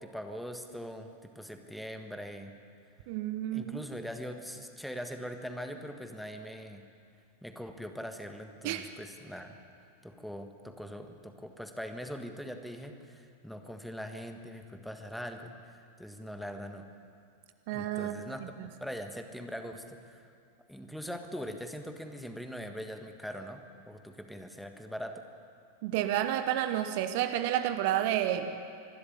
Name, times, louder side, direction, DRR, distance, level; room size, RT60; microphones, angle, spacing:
voice 1, 0.0-2.6 3.5-6.8 7.4-9.6 10.0-15.7 16.0-16.9 17.7-18.4 18.8-20.2 20.7-25.2, equal, ahead, 6 dB, 1.6 m, -42 dB
voice 2, 3.1-3.8 8.6-8.8 17.7-18.2 25.8-28.6, right 12 dB, 50° right, 9 dB, 1.1 m, -30 dB
25.5 x 12.5 x 9.9 m, 2.4 s
figure-of-eight pair, 90°, 0 cm